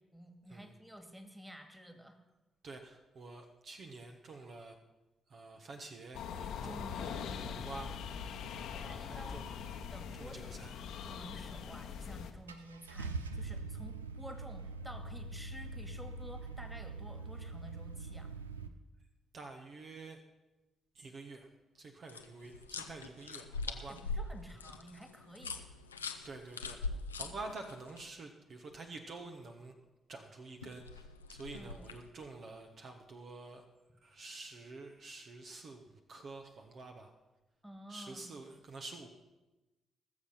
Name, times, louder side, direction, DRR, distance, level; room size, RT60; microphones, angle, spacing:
voice 1, 0.0-2.2 6.6-7.0 8.8-9.4 9.9-10.6 11.0-18.3 23.8-25.6 31.5-31.8 37.6-38.3, equal, 5° right, 7 dB, 2.1 m, -51 dB
voice 2, 2.6-4.8 5.3-7.9 8.7-9.5 10.2-10.7 19.3-20.2 20.9-21.5 21.7-24.0 26.2-29.7 30.1-33.6 34.0-37.1 37.9-39.1, right 3 dB, 50° right, 4 dB, 1.2 m, -48 dB
sound 1, 6.1-12.3, left 7 dB, 65° left, 1.0 m, -42 dB
Car / Engine starting, 11.8-11.9 12.5-18.7, right 3 dB, 85° right, 0.5 m, -43 dB
sound 2, 22.1-28.0 30.6-32.1, left 3 dB, 85° left, 0.5 m, -42 dB
19.5 x 7.3 x 5.7 m, 1.1 s
figure-of-eight pair, 40°, 0 cm